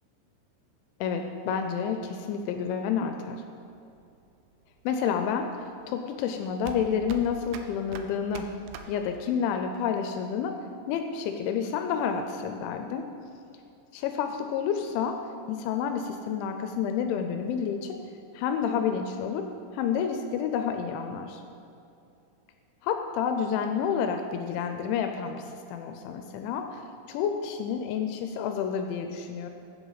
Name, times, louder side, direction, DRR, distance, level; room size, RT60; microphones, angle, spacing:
voice 1, 1.0-3.4 4.9-8.5 8.9-10.6 10.9-13.1 13.9-15.2 15.5-18.0 18.3-19.5 19.7-21.4 22.8-29.5, left 7 dB, 85° left, 6 dB, 2.8 m, -29 dB
sound 1, 3.6-9.6, right 7 dB, 80° right, 2.6 m, -45 dB
15.0 x 8.0 x 4.0 m, 2.6 s
omnidirectional pair, 5.6 m